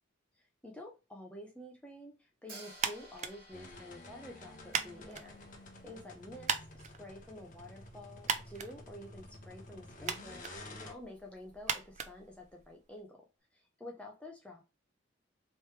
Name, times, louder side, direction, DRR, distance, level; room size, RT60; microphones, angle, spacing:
voice 1, 0.4-5.4 5.8-13.2 13.5-14.6, left 1 dB, 5° left, 0 dB, 0.6 m, -49 dB
Hi-hat, 2.5-6.5, right 2 dB, 55° right, 1.5 m, -56 dB
sound 1, 2.7-13.0, right 6 dB, 35° right, 0.4 m, -41 dB
sound 2, 3.5-10.9, left 1 dB, 45° left, 0.8 m, -51 dB
3.2 x 3.1 x 3.1 m, 0.29 s
head